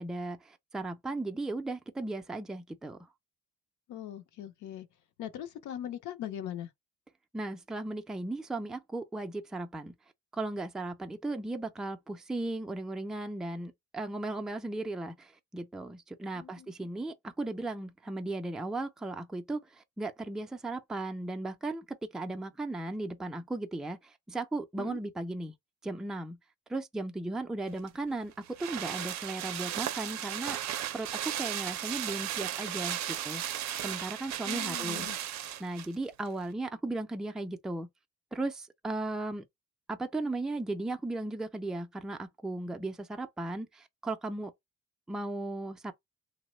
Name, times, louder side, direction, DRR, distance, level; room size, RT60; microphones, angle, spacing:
voice 1, 0.0-3.0 7.3-9.9 10.3-25.5 25.8-26.4 26.7-28.3 28.6-30.6 30.9-33.4 33.8-35.1 35.6-37.9 38.3-39.5 39.9-44.5 45.1-45.9, right 2 dB, ahead, 0.3 m, -36 dB
voice 2, 3.9-4.9 5.2-6.7 16.4-16.7 24.8-25.0 34.5-35.2, left 11 dB, 75° left, 0.6 m, -40 dB
sound 1, 27.8-35.9 36.3-36.4, right 11 dB, 65° right, 0.5 m, -35 dB
3.0 x 2.0 x 3.0 m
cardioid pair, 90°, 30 cm